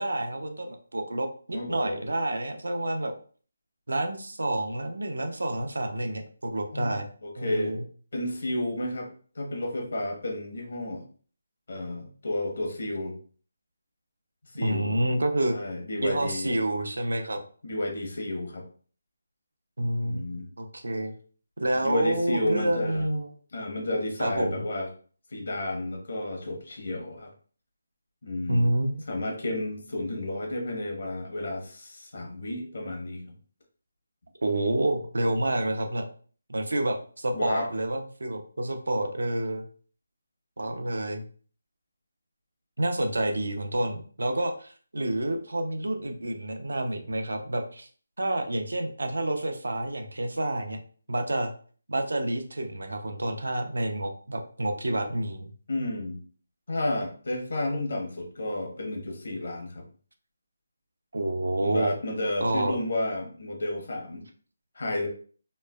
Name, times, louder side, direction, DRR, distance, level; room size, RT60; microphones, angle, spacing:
voice 1, 0.0-3.1 3.9-7.1 7.4-7.8 14.6-15.6 16.0-17.4 19.8-20.2 20.6-21.1 21.6-23.3 24.2-24.6 28.5-29.1 34.4-36.1 36.5-39.6 40.6-41.2 42.8-47.9 48.2-50.8 51.1-51.5 51.9-55.5 61.1-61.9 62.4-62.8, right 1 dB, 85° right, 5 dB, 0.5 m, -28 dB
voice 2, 1.5-2.0 6.7-7.0 7.2-7.7 8.1-9.1 9.3-11.0 11.7-13.1 14.5-15.0 15.5-16.5 17.6-18.6 20.0-20.5 21.7-23.1 23.5-24.9 25.3-27.3 28.2-28.6 29.1-33.2 37.3-37.7 55.7-56.2 56.7-59.8 61.6-64.2 64.8-65.1, left 1 dB, 65° left, 1 dB, 0.9 m, -31 dB
3.1 x 2.1 x 2.2 m, 0.43 s
figure-of-eight pair, 165°, 0 cm